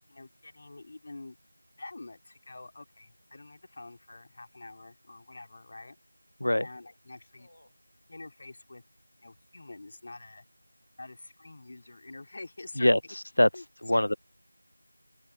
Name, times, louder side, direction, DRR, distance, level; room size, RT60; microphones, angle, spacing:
voice 1, 0.1-1.4 1.8-6.0 6.6-7.5 8.1-8.8 9.2-10.5 11.0-12.9 13.5-13.7 13.9-14.2, left 2 dB, 15° left, 3.5 m, -46 dB
voice 2, 12.8-13.5 13.8-14.1, left 1 dB, 45° left, 0.5 m, -23 dB
open air
figure-of-eight pair, 180°, 0 cm